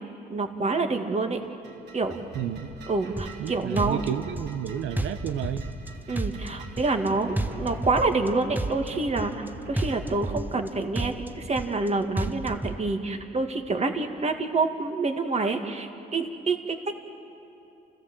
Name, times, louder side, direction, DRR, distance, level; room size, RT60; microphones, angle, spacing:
voice 1, 0.3-1.4 1.9-2.2 2.9-4.1 6.1-17.0, right 3 dB, 35° right, 5 dB, 2.0 m, -27 dB
sound 1, 1.4-10.2, right 1 dB, 60° right, 3.1 m, -43 dB
voice 2, 2.3-2.7 3.4-5.7, right 10 dB, 85° right, 8 dB, 0.8 m, -31 dB
sound 2, 3.2-3.5 3.8-4.7 5.0-5.9 6.2-7.1 7.4-8.3 8.6-9.5 9.8-10.7 11.0-11.9 12.2-12.8, right 1 dB, 10° right, 1.0 m, -31 dB
29.0 x 15.5 x 7.7 m, 2.8 s
cardioid pair, 90°, 20 cm